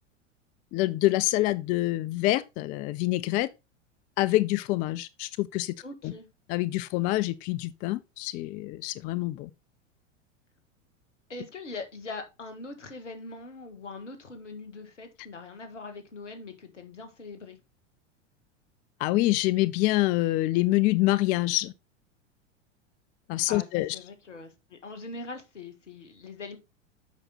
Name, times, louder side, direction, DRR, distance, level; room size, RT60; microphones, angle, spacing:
voice 1, 0.7-3.5 4.2-5.8 6.0-6.1 6.5-9.5 19.0-21.7 23.3-24.0, left 18 dB, 25° left, 0.4 m, -26 dB
voice 2, 5.8-6.3 11.3-17.6 23.5-26.6, left 3 dB, 75° left, 2.0 m, -42 dB
8.1 x 5.7 x 4.1 m
figure-of-eight pair, 85°, 37 cm